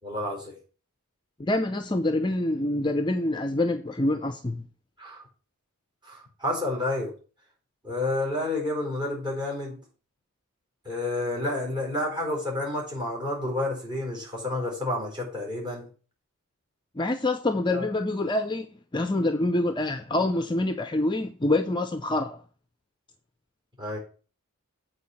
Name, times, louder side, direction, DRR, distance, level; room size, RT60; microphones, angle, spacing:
voice 1, 0.0-0.6 5.0-5.2 6.0-7.1 7.8-9.8 10.8-15.9 17.7-17.9 23.8-24.0, left 2 dB, 20° right, 4.3 m, -30 dB
voice 2, 1.4-4.6 17.0-18.7 18.9-22.4, left 2 dB, 20° left, 0.5 m, -26 dB
8.1 x 4.7 x 7.0 m
head